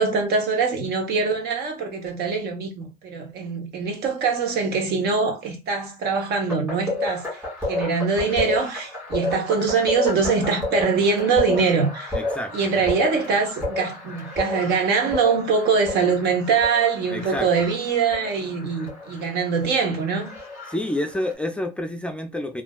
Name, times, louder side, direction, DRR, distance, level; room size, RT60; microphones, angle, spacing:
voice 1, 0.0-7.3 7.7-12.2 12.5-20.3, right 5 dB, 70° right, 0.9 m, -23 dB
sound 1, 6.5-21.3, left 2 dB, 15° right, 1.9 m, -31 dB
voice 2, 12.1-12.5 17.1-17.7 20.7-22.6, left 1 dB, 5° left, 0.3 m, -28 dB
3.3 x 2.5 x 2.2 m
cardioid pair, 110°, 17 cm